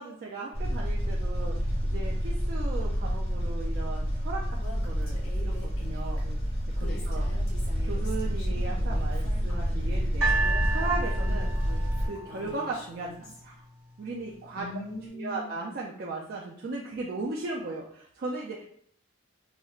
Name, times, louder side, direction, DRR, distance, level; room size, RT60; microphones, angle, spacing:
voice 1, 0.0-6.2 6.8-7.3 7.8-11.5 12.0-13.6 14.0-14.8 15.1-18.6, right 3 dB, 45° right, -3 dB, 0.3 m, -37 dB
sound 1, 0.5-12.1, equal, 25° left, 0.8 m, -28 dB
Female speech woman speaking, 4.6-13.4, left 1 dB, 75° left, 0.8 m, -46 dB
sound 2, 10.2-13.4 14.2-14.3, right 4 dB, 85° right, 0.9 m, -32 dB
voice 2, 14.5-15.5, left 2 dB, 50° left, 3 dB, 0.4 m, -39 dB
4.3 x 2.1 x 2.3 m, 0.62 s
head